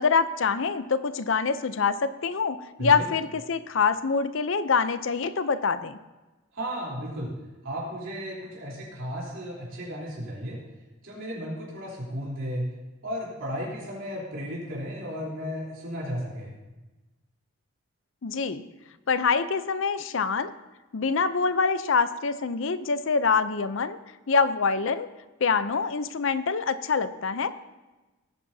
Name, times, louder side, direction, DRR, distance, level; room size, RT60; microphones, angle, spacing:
voice 1, 0.0-6.0 18.2-18.6 19.1-20.5 20.9-24.0 24.3-25.1 25.4-27.5, left 5 dB, 60° left, 13 dB, 0.6 m, -25 dB
voice 2, 2.8-3.1 6.5-7.3 7.6-10.6 11.0-12.7 13.0-16.5, equal, 65° right, -6 dB, 3.5 m, -34 dB
19.0 x 10.0 x 2.8 m, 1.1 s
head